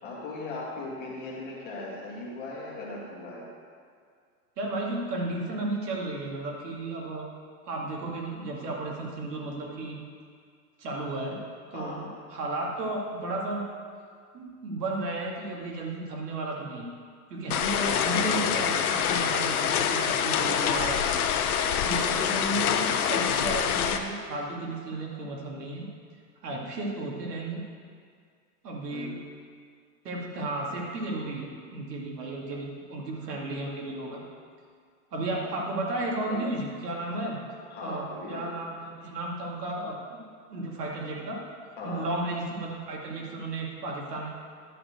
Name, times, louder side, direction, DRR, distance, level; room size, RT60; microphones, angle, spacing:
voice 1, 0.0-3.5 11.7-12.0 22.3-22.7 28.9-29.1 36.3-36.4 37.1-37.3 37.6-38.4 41.8-42.1, left 2 dB, 20° left, -6 dB, 2.1 m, -38 dB
voice 2, 4.6-7.3 7.7-10.0 10.8-11.4 11.7-13.7 14.3-16.9 17.3-21.0 21.6-25.9 26.4-27.6 28.6-29.2 30.0-34.2 35.1-37.4 37.8-40.2 40.5-41.4 41.8-44.3, right 2 dB, 75° right, -2 dB, 2.5 m, -33 dB
sound 1, 17.5-24.0, left 8 dB, 65° left, 0.8 m, -26 dB
11.0 x 4.3 x 7.9 m, 2.1 s
supercardioid pair, 160°, 48 cm